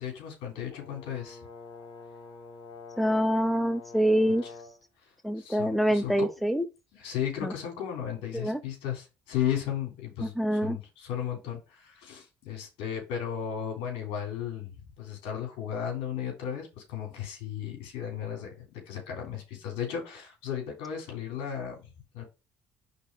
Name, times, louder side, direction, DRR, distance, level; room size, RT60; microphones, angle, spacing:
voice 1, 0.0-1.4 4.2-4.5 5.0-6.3 6.9-22.2, left 9 dB, 75° left, 3.4 m, -35 dB
Brass instrument, 0.7-4.9, left 4 dB, 50° left, 2.2 m, -46 dB
voice 2, 3.0-4.4 5.2-6.7 7.4-7.5 8.3-8.6 10.2-10.8, equal, ahead, 0.7 m, -26 dB
5.4 x 4.1 x 5.1 m
hypercardioid pair, 60°, 10 cm